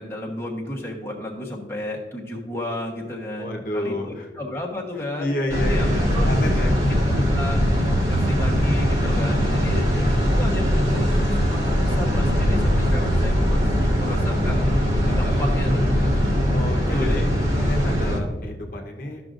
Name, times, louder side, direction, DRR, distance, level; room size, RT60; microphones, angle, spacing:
voice 1, 0.0-5.9 6.1-6.3 7.1-7.7 8.1-9.8 10.1-14.8 15.2-16.4 16.7-17.3, left 1 dB, 15° left, -2 dB, 1.0 m, -33 dB
voice 2, 3.4-4.3 5.2-6.7 9.7-10.2 15.0-15.4 16.5-17.3 17.6-19.2, left 1 dB, 50° left, 1 dB, 1.0 m, -31 dB
sound 1, 5.5-18.2, equal, 35° right, 1.6 m, -21 dB
12.5 x 6.0 x 2.5 m, 1.3 s
head